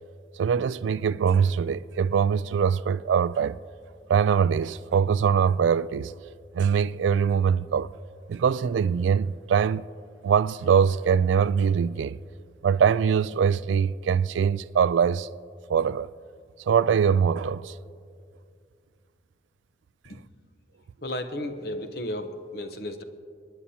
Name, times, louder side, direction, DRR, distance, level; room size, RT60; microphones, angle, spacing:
voice 1, 0.4-3.6 4.1-6.1 6.5-7.9 8.3-9.8 10.2-12.2 12.6-15.3 15.7-16.1 16.7-17.8, right 7 dB, 80° right, 0.3 m, -23 dB
voice 2, 21.0-23.0, left 1 dB, 55° left, 0.8 m, -34 dB
28.5 x 9.9 x 2.8 m
head